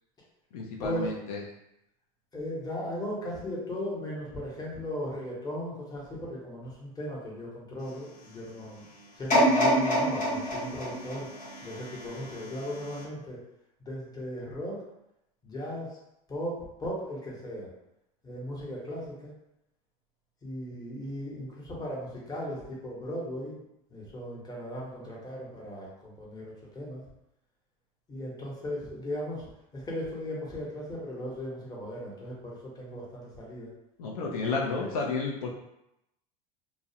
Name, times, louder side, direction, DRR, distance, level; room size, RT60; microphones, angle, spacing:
voice 1, 0.5-1.4 34.0-35.5, left 4 dB, 85° left, -1 dB, 0.5 m, -31 dB
voice 2, 2.3-8.8 9.2-11.3 11.6-13.4 13.8-14.8 15.4-16.0 16.3-17.7 18.2-19.3 20.4-23.6 23.9-27.0 28.1-33.7 34.7-34.9, equal, 20° left, -4 dB, 0.9 m, -37 dB
sound 1, 9.3-12.4 12.9-13.0, equal, 45° left, 0.9 m, -26 dB
2.3 x 2.0 x 2.7 m, 0.85 s
supercardioid pair, 105°, 19 cm